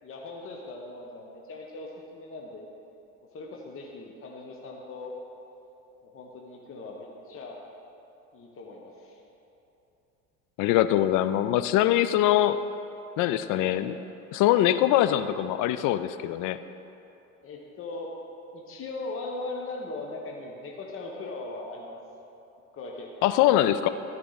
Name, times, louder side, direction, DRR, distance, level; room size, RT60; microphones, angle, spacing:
voice 1, 0.0-2.7 3.3-5.2 6.0-7.6 8.3-9.2 13.5-13.8 17.4-18.1 18.5-22.0 22.7-23.1, left 2 dB, 30° left, -1 dB, 1.2 m, -39 dB
voice 2, 10.6-12.6 13.2-13.9 14.3-16.6 23.2-23.9, left 13 dB, 45° left, 12 dB, 0.4 m, -23 dB
13.0 x 4.9 x 4.0 m, 2.9 s
hypercardioid pair, 80°, 43 cm